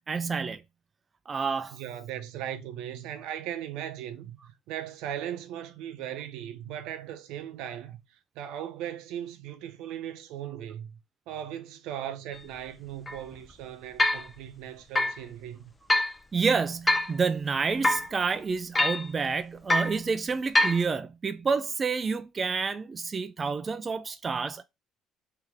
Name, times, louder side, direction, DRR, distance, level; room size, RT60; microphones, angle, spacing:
voice 1, 0.1-0.6 1.3-1.8 16.3-24.6, right 5 dB, 30° right, 0.4 m, -29 dB
voice 2, 1.7-8.0 8.3-11.0 11.3-15.7, right 10 dB, 80° right, 0.7 m, -38 dB
sound 1, 12.3-12.4 13.1-13.2 14.0-14.3 15.0-15.2 15.9-16.1 16.9-17.2 17.8-18.1 18.7-19.1 19.7-20.0 20.5-20.8, left 1 dB, 20° left, 0.6 m, -24 dB
3.3 x 3.1 x 3.4 m
supercardioid pair, 90°, 0 cm